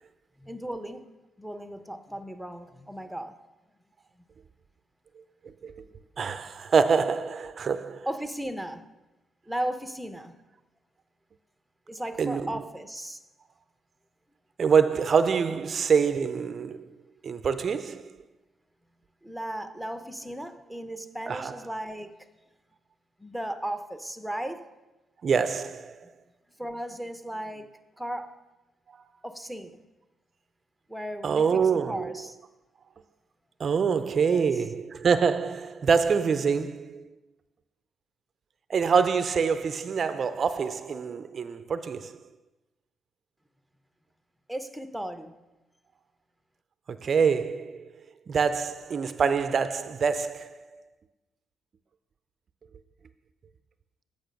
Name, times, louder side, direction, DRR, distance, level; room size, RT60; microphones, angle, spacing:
voice 1, 0.4-1.1 1.4-3.4 8.1-8.8 9.5-10.3 11.9-13.2 19.2-22.2 23.2-24.7 26.6-28.4 29.2-29.8 30.9-32.4 34.3-34.5 44.5-45.3, right 1 dB, ahead, 0.6 m, -36 dB
voice 2, 5.4-5.8 6.2-8.1 12.2-12.6 14.6-16.9 17.2-18.1 21.3-21.6 25.2-26.0 31.2-32.1 33.6-37.0 38.7-42.2 46.9-47.9 48.3-50.8, right 6 dB, 50° right, 0.4 m, -25 dB
8.9 x 5.2 x 6.4 m
cardioid pair, 90°, 0 cm